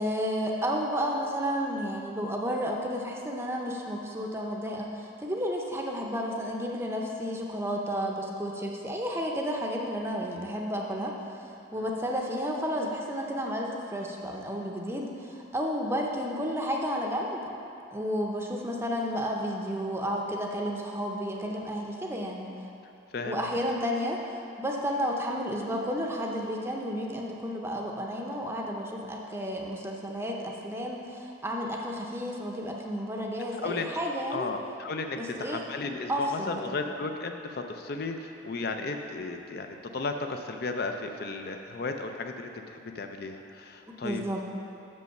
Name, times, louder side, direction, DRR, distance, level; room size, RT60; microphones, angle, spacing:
voice 1, 0.0-17.5 17.9-22.5 23.2-24.2 24.6-34.5 35.2-35.6 36.1-36.6 44.0-44.4, equal, 15° right, 0 dB, 0.6 m, -32 dB
voice 2, 34.3-44.2, left 3 dB, 55° left, 5 dB, 0.4 m, -34 dB
6.4 x 5.4 x 6.5 m, 2.7 s
head